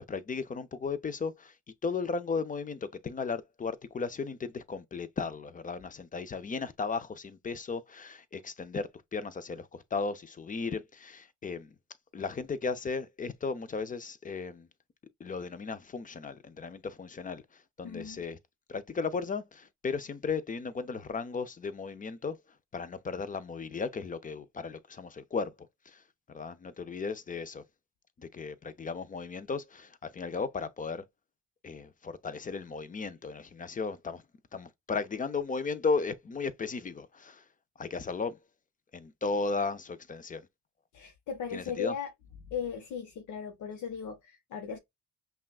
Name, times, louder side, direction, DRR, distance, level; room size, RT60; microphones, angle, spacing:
voice 1, 0.0-1.6 1.8-11.7 12.1-14.7 15.2-18.4 18.7-22.4 22.7-25.5 25.9-26.0 26.3-27.6 28.2-31.0 31.6-34.2 34.5-37.4 37.8-38.4 38.9-40.4 41.5-42.0, left 4 dB, 25° left, 0.5 m, -35 dB
voice 2, 17.8-18.2 40.9-42.1 42.5-44.8, left 7 dB, 75° left, 0.9 m, -37 dB
5.5 x 2.4 x 2.4 m
cardioid pair, 90°, 30 cm